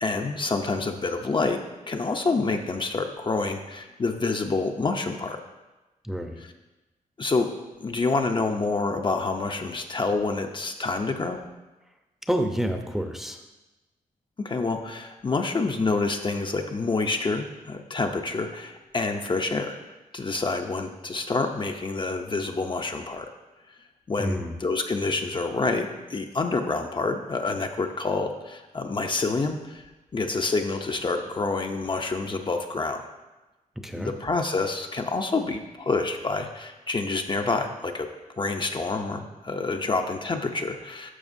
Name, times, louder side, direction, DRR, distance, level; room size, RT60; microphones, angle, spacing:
voice 1, 0.0-1.6 1.9-5.4 7.2-7.5 7.8-11.4 14.4-19.8 20.1-23.3 24.1-29.8 30.1-33.0 33.9-38.1 38.4-41.1, left 3 dB, 35° left, 4 dB, 0.6 m, -27 dB
voice 2, 6.0-6.4 12.3-13.4 24.2-24.6 33.8-34.1, equal, 5° right, 4 dB, 0.7 m, -28 dB
11.0 x 6.4 x 2.7 m, 1.1 s
wide cardioid pair, 95°, 15 cm